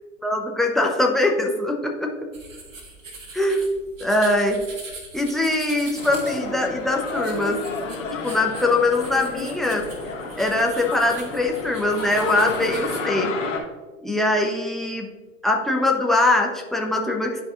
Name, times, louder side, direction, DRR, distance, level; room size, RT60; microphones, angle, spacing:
voice 1, 0.2-2.3 3.3-3.7 4.0-4.6 5.1-7.6 8.2-9.9 10.4-13.3 14.0-15.1 15.4-17.4, left 2 dB, ahead, 0 dB, 0.8 m, -22 dB
sound 1, 2.3-13.0, right 3 dB, 70° right, 1.6 m, -41 dB
sound 2, 6.0-13.6, left 4 dB, 70° left, 1.9 m, -31 dB
12.0 x 4.9 x 2.5 m, 1.3 s
figure-of-eight pair, 100°, 40 cm